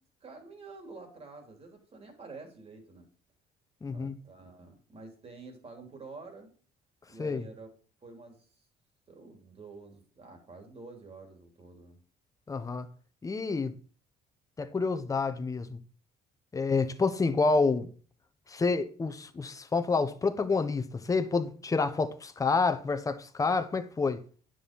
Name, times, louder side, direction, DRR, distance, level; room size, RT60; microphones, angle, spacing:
voice 1, 0.2-3.1 3.9-6.5 7.1-7.7 8.0-8.5 9.1-12.0, right 3 dB, 35° right, 3.4 m, -48 dB
voice 2, 3.8-4.2 7.2-7.5 12.5-12.9 13.2-13.7 14.6-15.8 16.5-17.9 18.5-24.2, left 4 dB, 20° left, 0.9 m, -28 dB
9.9 x 6.4 x 5.3 m
cardioid pair, 110°, 17 cm